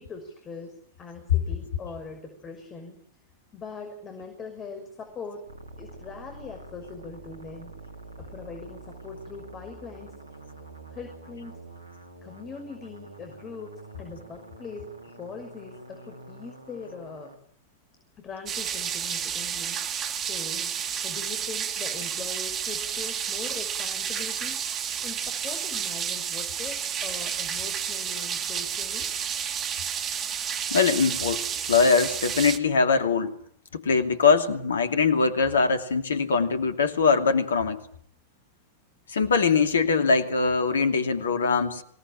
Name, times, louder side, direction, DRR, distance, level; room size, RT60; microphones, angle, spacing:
voice 1, 0.0-3.0 3.5-5.4 5.8-7.7 8.2-10.2 10.9-11.6 12.2-17.3 18.2-20.8 21.0-24.6 25.0-29.1, left 4 dB, 25° left, 4 dB, 6.0 m, -41 dB
sound 1, 5.5-17.4, right 2 dB, 75° right, 3.1 m, -46 dB
sound 2, 18.5-32.6, right 8 dB, 30° right, 2.1 m, -31 dB
voice 2, 30.7-33.4 33.7-37.9 39.1-41.8, left 5 dB, 70° left, 8 dB, 2.7 m, -22 dB
26.5 x 18.5 x 9.0 m, 0.63 s
figure-of-eight pair, 90°, 0 cm